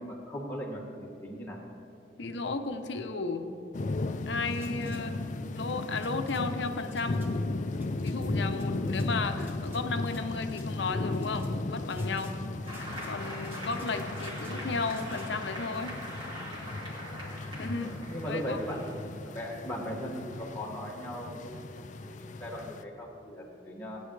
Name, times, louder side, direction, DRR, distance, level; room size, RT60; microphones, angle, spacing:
voice 1, 0.0-1.6 4.8-5.1 8.8-9.1 17.7-18.9 19.2-24.0, equal, 10° left, -4 dB, 1.9 m, -38 dB
voice 2, 2.2-3.5 4.3-7.2 8.0-12.3 13.1-16.0 17.6-17.9 18.2-18.6, left 4 dB, 70° left, 7 dB, 0.8 m, -34 dB
sound 1, 3.7-22.8, left 2 dB, 40° left, 0.4 m, -36 dB
sound 2, 4.5-5.0 5.9-6.4 6.9-7.3 7.7-8.2 8.5-9.1 9.4-10.2 10.5-10.7 11.1-11.5 11.9-12.4 12.6-13.1 13.4-14.6 14.8-15.3, left 1 dB, 15° right, 1.5 m, -55 dB
Applause, 12.7-19.9, equal, 30° right, 3.2 m, -42 dB
18.0 x 10.0 x 3.3 m, 2.7 s
head